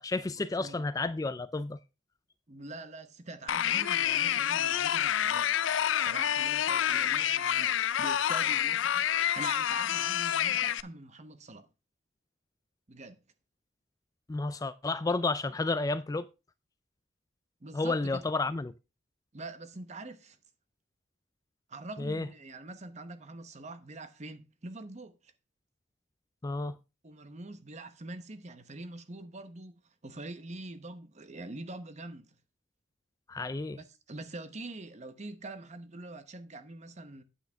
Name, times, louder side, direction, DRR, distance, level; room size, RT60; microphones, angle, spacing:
voice 1, 0.0-1.8 14.3-16.3 17.7-18.7 22.0-22.3 26.4-26.7 33.3-33.8, left 3 dB, 20° left, 0.4 m, -31 dB
voice 2, 2.5-5.5 6.0-11.7 12.9-13.2 17.6-18.2 19.3-20.4 21.7-25.3 27.0-32.3 33.7-37.2, right 2 dB, 35° right, 1.0 m, -44 dB
sound 1, 3.5-10.8, left 10 dB, 80° left, 0.4 m, -28 dB
9.1 x 8.3 x 3.5 m
head